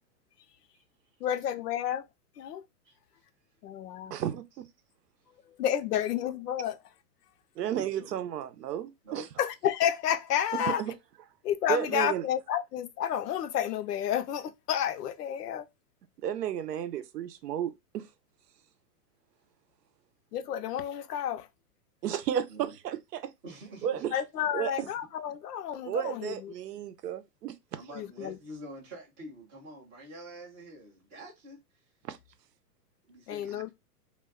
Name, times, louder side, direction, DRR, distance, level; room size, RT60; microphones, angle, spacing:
voice 1, 1.2-2.1 2.4-2.6 3.6-4.2 5.6-6.8 9.4-10.8 11.4-15.7 20.3-21.5 24.1-26.5 27.9-28.4 33.3-33.7, left 10 dB, 85° left, 0.6 m, -30 dB
voice 2, 4.1-4.7 7.6-9.3 10.5-10.9 11.7-12.3 16.2-18.1 22.0-23.3 23.8-24.1 24.5-24.9 25.9-27.6 32.0-32.2, right 10 dB, 90° right, 0.6 m, -33 dB
voice 3, 23.4-24.1 27.7-31.6 33.0-33.6, right 1 dB, 10° right, 0.3 m, -46 dB
2.2 x 2.2 x 3.4 m
hypercardioid pair, 135°, 47 cm